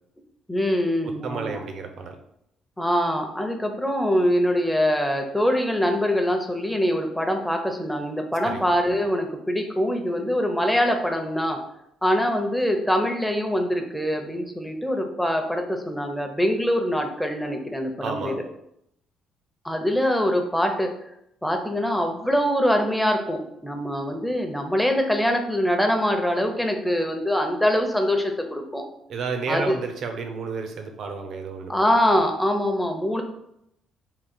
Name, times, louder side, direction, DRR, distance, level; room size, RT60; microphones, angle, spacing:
voice 1, 0.5-1.6 2.8-11.6 12.0-18.3 19.6-20.9 21.4-28.8 29.5-29.8 31.7-33.2, equal, 5° left, 4 dB, 0.7 m, -23 dB
voice 2, 1.0-2.2 8.4-8.6 18.0-18.4 29.1-31.7, right 4 dB, 65° right, 5 dB, 0.6 m, -31 dB
3.7 x 2.3 x 4.3 m, 0.78 s
cardioid pair, 80°, 0 cm